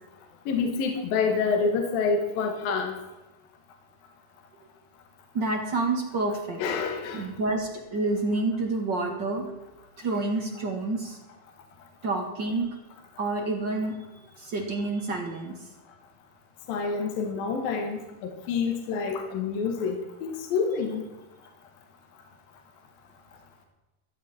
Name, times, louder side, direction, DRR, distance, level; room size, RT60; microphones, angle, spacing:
voice 1, 0.5-2.9 6.6-7.2 16.7-20.0 20.2-21.0, left 5 dB, 70° left, 4 dB, 3.2 m, -27 dB
voice 2, 5.3-6.6 7.1-9.4 10.0-11.2 12.0-12.7 13.2-14.0 14.4-15.7, right 2 dB, 40° right, 2 dB, 1.7 m, -28 dB
15.0 x 14.0 x 4.4 m, 1.1 s
omnidirectional pair, 4.4 m